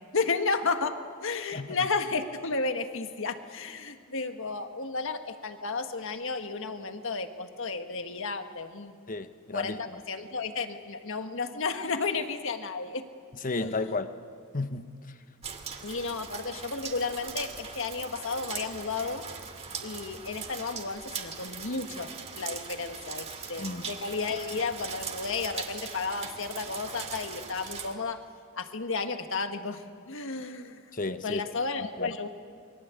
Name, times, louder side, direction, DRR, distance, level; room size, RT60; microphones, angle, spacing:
voice 1, 0.1-9.0 9.5-13.0 13.5-13.9 15.8-19.3 19.8-28.2 28.6-30.8 31.2-32.3, left 4 dB, 65° left, 7 dB, 1.7 m, -33 dB
voice 2, 9.1-10.0 13.4-14.1 14.5-14.9 23.6-23.9 30.9-31.4 32.0-32.1, left 3 dB, 40° left, 9 dB, 1.1 m, -33 dB
sound 1, 15.4-27.9, right 6 dB, 30° right, 2.4 m, -40 dB
28.5 x 23.0 x 8.4 m, 2.1 s
head